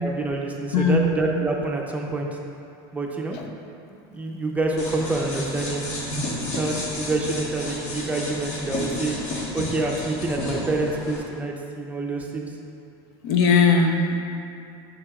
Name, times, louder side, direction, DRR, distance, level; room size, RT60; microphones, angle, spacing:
voice 1, 0.0-2.3 2.9-3.4 3.9-5.8 6.3-12.5, right 2 dB, 10° right, 0 dB, 0.6 m, -27 dB
voice 2, 0.7-1.1 3.3-3.5 13.2-14.2, left 4 dB, 75° left, 3 dB, 0.7 m, -19 dB
sound 1, 4.8-11.2, left 1 dB, 55° left, 1.5 m, -31 dB
8.2 x 5.9 x 2.4 m, 2.6 s
supercardioid pair, 130°, 13 cm